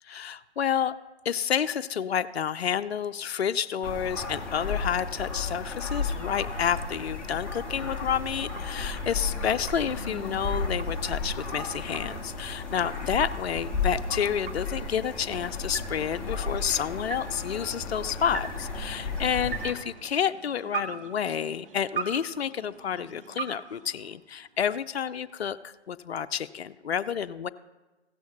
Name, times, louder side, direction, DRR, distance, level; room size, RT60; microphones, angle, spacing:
voice 1, 0.0-0.9 1.2-27.5, left 8 dB, 65° left, 11 dB, 0.5 m, -29 dB
sound 1, 3.8-19.7, left 4 dB, 5° left, 0.8 m, -34 dB
sound 2, 6.9-24.7, right 5 dB, 50° right, 1.2 m, -43 dB
16.0 x 12.5 x 3.0 m, 1.1 s
figure-of-eight pair, 140°, 34 cm